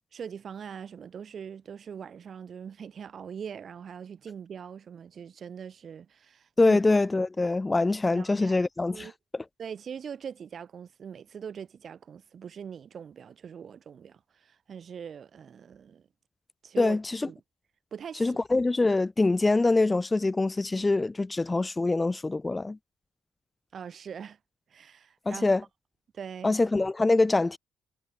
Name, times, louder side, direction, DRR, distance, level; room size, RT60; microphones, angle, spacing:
voice 1, 0.1-6.8 8.1-8.6 8.9-9.1 9.6-16.1 16.6-17.0 17.3-17.4 17.9-18.4 23.7-24.4 24.7-25.5 26.1-26.6, right 7 dB, 50° right, 7.7 m, -42 dB
voice 2, 6.6-9.1 16.8-17.3 18.2-22.8 25.3-25.6 26.4-27.6, left 3 dB, 20° left, 0.3 m, -24 dB
cardioid pair, 90°, 0 cm